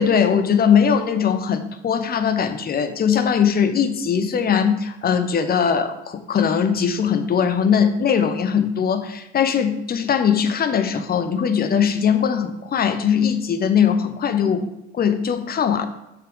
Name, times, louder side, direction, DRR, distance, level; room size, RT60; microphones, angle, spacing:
voice 1, 0.0-15.9, left 7 dB, 25° left, 9 dB, 0.7 m, -20 dB
6.8 x 5.9 x 3.3 m, 0.92 s
figure-of-eight pair, 60°, 35 cm